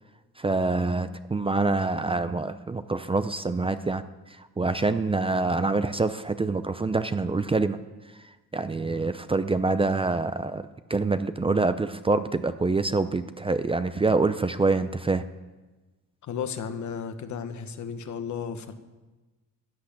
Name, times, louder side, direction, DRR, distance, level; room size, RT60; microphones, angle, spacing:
voice 1, 0.4-4.0 4.6-7.8 8.5-15.2, right 3 dB, 15° right, 11 dB, 0.5 m, -26 dB
voice 2, 16.2-18.7, left 7 dB, 60° left, 8 dB, 1.3 m, -34 dB
14.0 x 8.3 x 8.9 m, 1.2 s
cardioid pair, 115°, 32 cm